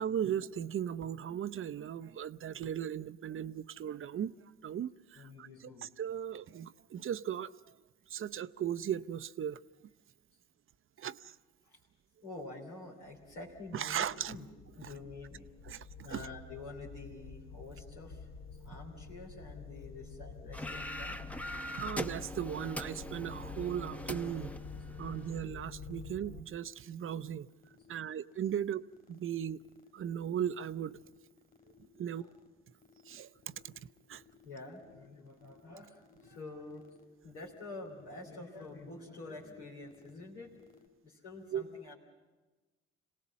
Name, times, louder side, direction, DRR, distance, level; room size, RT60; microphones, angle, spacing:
voice 1, 0.0-4.3 4.6-7.5 8.1-9.6 11.0-11.3 13.7-14.3 14.8-14.9 15.7-15.8 16.1-16.3 21.8-24.5 25.0-27.5 27.9-28.8 29.1-29.6 29.9-31.0 32.0-32.2 33.1-33.3 33.6-33.7 34.1-34.2 41.5-41.6, right 9 dB, 45° right, 0.7 m, -37 dB
voice 2, 5.1-5.9 12.2-14.4 14.8-15.4 16.0-18.3 18.6-21.2 32.2-32.3 34.4-36.9 37.2-40.6 41.0-41.9, left 3 dB, 85° left, 3.3 m, -47 dB
sound 1, 13.0-26.4, left 5 dB, 55° left, 1.1 m, -48 dB
sound 2, 20.5-25.4, equal, 5° left, 0.9 m, -42 dB
sound 3, 23.2-40.9, left 6 dB, 25° left, 2.7 m, -63 dB
26.0 x 18.0 x 7.3 m
hypercardioid pair, 50°, 30 cm